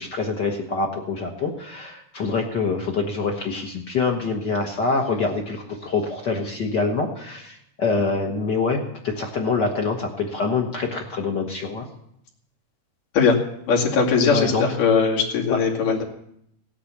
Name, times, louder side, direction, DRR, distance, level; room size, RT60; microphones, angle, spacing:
voice 1, 0.0-11.8 14.2-14.6 15.5-15.6, left 4 dB, 50° left, 3 dB, 1.3 m, -25 dB
voice 2, 13.7-16.0, left 5 dB, 85° left, -1 dB, 3.9 m, -20 dB
18.0 x 8.4 x 7.3 m, 0.76 s
omnidirectional pair, 3.7 m